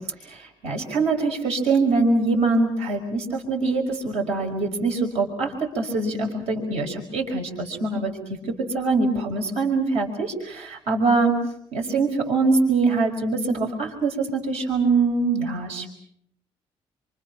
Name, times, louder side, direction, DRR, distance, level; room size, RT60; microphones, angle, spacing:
voice 1, 0.2-8.1 8.5-11.3 11.7-15.9, right 3 dB, 80° right, 1 dB, 5.2 m, -23 dB
28.0 x 26.0 x 6.0 m, 0.70 s
cardioid pair, 125°, 11 cm